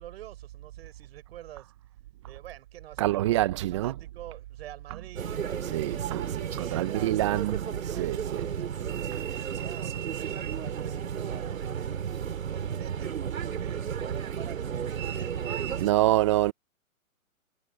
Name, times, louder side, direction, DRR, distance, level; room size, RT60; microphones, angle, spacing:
voice 1, 0.0-1.7 2.3-6.0 6.5-10.1 10.6-15.6, right 13 dB, 45° right, 5.5 m, -48 dB
voice 2, 3.0-3.9 5.7-8.5 15.8-16.5, right 15 dB, 20° right, 0.6 m, -26 dB
sound 1, 5.2-15.9, right 8 dB, 65° right, 3.3 m, -33 dB
hypercardioid pair, 145°, 42 cm